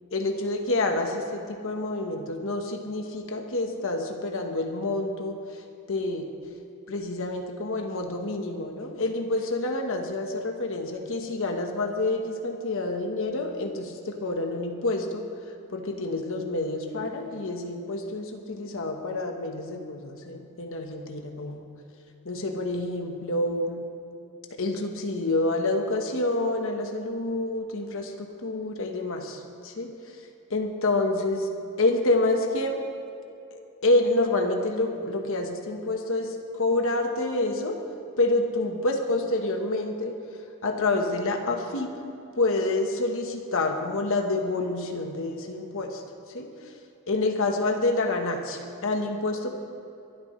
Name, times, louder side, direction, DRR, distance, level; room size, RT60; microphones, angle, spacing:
voice 1, 0.1-5.6 5.9-6.3 6.9-15.2 15.7-21.6 22.2-23.8 24.6-30.2 30.5-31.5 31.8-32.8 33.5-37.8 38.2-40.1 40.6-41.9 42.4-46.0 46.3-46.7 47.1-49.5, left 2 dB, 65° left, 3 dB, 1.2 m, -28 dB
23.0 x 12.5 x 3.2 m, 2.7 s
head